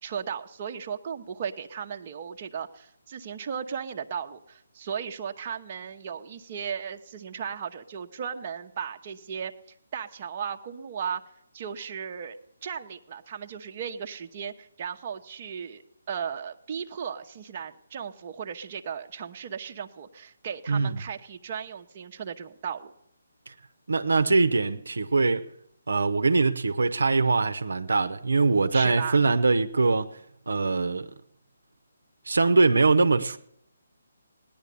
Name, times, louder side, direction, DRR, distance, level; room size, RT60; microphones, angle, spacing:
voice 1, 0.0-9.5 9.9-11.2 11.5-12.4 12.6-15.8 16.1-22.9 28.7-29.2, right 7 dB, 35° right, 0.9 m, -36 dB
voice 2, 20.7-21.0 23.5-23.6 23.9-25.5 25.9-30.1 30.5-31.1 32.3-33.4, right 3 dB, 75° right, 0.8 m, -22 dB
17.5 x 10.5 x 6.8 m
figure-of-eight pair, 150°, 0 cm